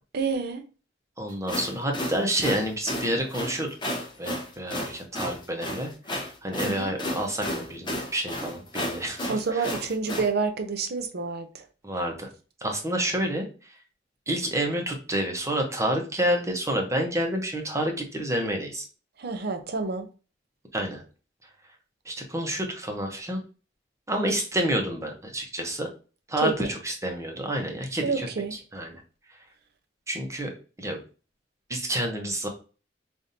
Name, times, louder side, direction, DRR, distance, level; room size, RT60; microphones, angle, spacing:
voice 1, 0.1-0.6 6.6-6.9 9.3-11.7 19.2-20.1 26.4-26.7 28.0-28.5, right 4 dB, 60° right, 0.7 m, -28 dB
voice 2, 1.2-3.9 4.2-9.4 11.8-12.3 12.6-13.5 14.3-18.8 20.7-21.0 22.1-23.4 24.1-25.9 26.3-26.5 26.9-28.3 28.7-29.0 30.1-30.5 30.8-31.0 31.7-32.5, right 1 dB, 15° right, 0.9 m, -29 dB
sound 1, 1.3-10.3, left 1 dB, 25° left, 0.8 m, -32 dB
5.1 x 2.7 x 2.7 m
head